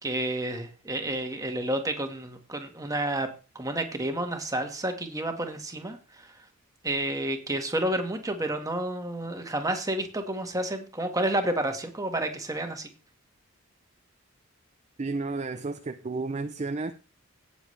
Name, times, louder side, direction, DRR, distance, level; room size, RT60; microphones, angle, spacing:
voice 1, 0.0-3.3 3.5-6.3 6.8-12.9, right 1 dB, 15° right, 1.6 m, -30 dB
voice 2, 15.0-16.9, right 3 dB, 30° right, 0.5 m, -32 dB
17.5 x 7.0 x 3.3 m
head